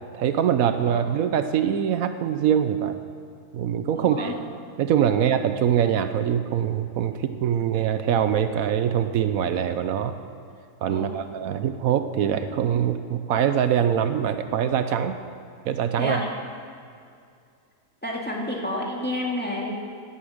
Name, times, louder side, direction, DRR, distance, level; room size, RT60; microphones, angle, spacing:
voice 1, 0.1-2.9 3.5-4.3 4.8-10.1 10.8-15.1 15.6-16.2, right 9 dB, 80° right, 9 dB, 1.1 m, -23 dB
voice 2, 3.9-4.3 10.9-11.2 16.0-16.3 18.0-19.7, left 1 dB, 5° left, -3 dB, 2.1 m, -29 dB
17.0 x 8.5 x 6.6 m, 2.3 s
omnidirectional pair, 1.5 m